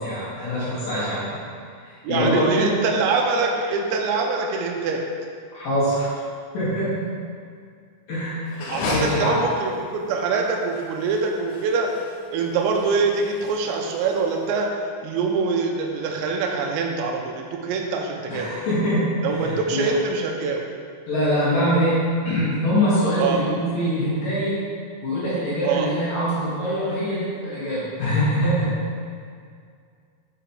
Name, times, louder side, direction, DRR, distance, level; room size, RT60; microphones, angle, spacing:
voice 1, 0.0-1.4 1.8-2.7 5.5-6.1 6.5-7.0 8.1-8.6 8.9-9.4 18.3-19.9 21.1-24.6 25.0-28.7, equal, 55° left, -10 dB, 2.8 m, -23 dB
voice 2, 2.0-5.0 8.7-11.9 12.3-14.7 15.0-18.5 19.2-20.6 23.2-23.4 25.6-25.9, right 4 dB, 85° right, 1 dB, 2.8 m, -24 dB
sound 1, 8.5-14.6, left 2 dB, 75° left, 2.2 m, -33 dB
7.1 x 5.0 x 4.5 m, 2.2 s
omnidirectional pair, 5.6 m